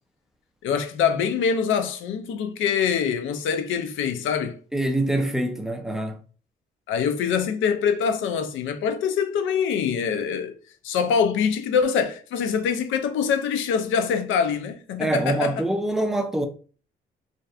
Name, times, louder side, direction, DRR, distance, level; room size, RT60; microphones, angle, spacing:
voice 1, 0.6-4.6 6.9-10.5 10.8-15.5, left 7 dB, 80° left, 0.4 m, -24 dB
voice 2, 4.7-6.2 15.0-16.5, right 1 dB, ahead, 0.4 m, -25 dB
2.6 x 2.2 x 2.3 m
cardioid pair, 90°, 20 cm